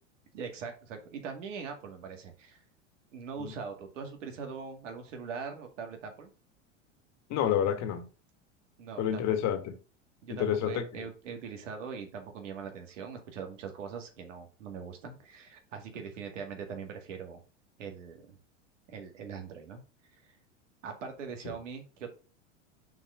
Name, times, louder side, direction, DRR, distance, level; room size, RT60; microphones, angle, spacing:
voice 1, 0.3-2.6 3.1-6.3 8.8-9.2 10.2-17.4 17.8-18.4 18.9-19.8 20.1-20.2 20.8-22.1, right 6 dB, 75° right, 2.1 m, -41 dB
voice 2, 7.3-8.1 9.0-9.7 10.3-10.8, left 10 dB, 45° left, 1.8 m, -29 dB
6.1 x 4.1 x 5.1 m
hypercardioid pair, 95°, 37 cm